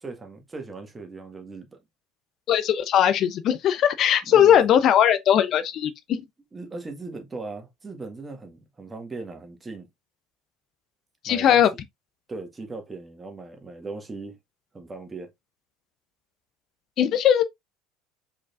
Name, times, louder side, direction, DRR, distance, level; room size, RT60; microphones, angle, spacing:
voice 1, 0.0-1.8 4.3-4.6 6.5-9.9 11.2-11.6 12.3-14.4 14.7-15.3, right 3 dB, 20° right, 1.7 m, -38 dB
voice 2, 2.5-6.2 11.2-11.7 17.0-17.4, left 10 dB, 50° left, 0.8 m, -19 dB
4.8 x 4.3 x 2.5 m
hypercardioid pair, 70°, 0 cm